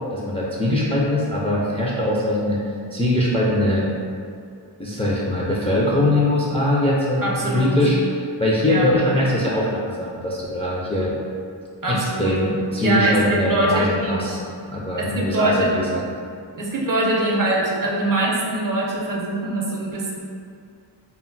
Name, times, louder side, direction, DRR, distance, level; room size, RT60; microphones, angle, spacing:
voice 1, 0.1-2.6 2.9-3.9 4.8-11.1 11.9-14.4 14.7-16.0, left 1 dB, 15° left, -6 dB, 0.3 m, -22 dB
voice 2, 7.2-7.8 8.7-8.9 11.8-12.3 12.8-14.2 15.0-15.7 16.6-20.1, right 2 dB, 45° right, -3 dB, 0.6 m, -23 dB
2.1 x 2.1 x 3.8 m, 2.3 s
wide cardioid pair, 70°, 47 cm